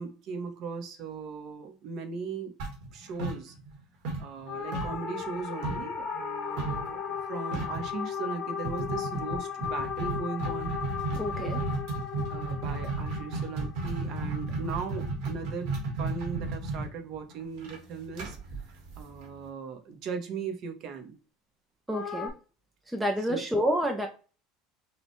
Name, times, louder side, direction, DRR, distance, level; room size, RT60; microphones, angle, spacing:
voice 1, 0.0-2.5 2.9-3.5 4.2-10.7 12.3-18.4 19.0-21.2 23.3-23.4, right 5 dB, 35° right, 0.7 m, -38 dB
sound 1, 2.6-3.8 4.0-5.9 6.6-6.9 7.2-7.3 7.5-7.9 8.6-19.4, right 3 dB, 55° right, 1.5 m, -34 dB
sound 2, 4.5-15.0 21.9-22.3, left 7 dB, 25° left, 0.8 m, -36 dB
voice 2, 11.2-11.6 21.9-22.3 22.9-24.1, equal, 5° right, 0.4 m, -28 dB
5.6 x 2.2 x 2.9 m
cardioid pair, 175°, 0 cm